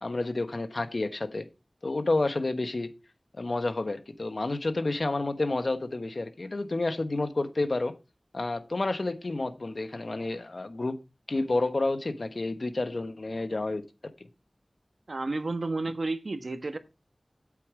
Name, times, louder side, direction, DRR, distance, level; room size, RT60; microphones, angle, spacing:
voice 1, 0.0-1.5 1.8-2.9 3.3-7.9 8.3-11.0 11.3-13.8, left 2 dB, 70° left, 1.2 m, -30 dB
voice 2, 15.1-16.8, right 2 dB, 75° right, 1.2 m, -31 dB
8.6 x 8.5 x 4.8 m
wide cardioid pair, 45°, 0 cm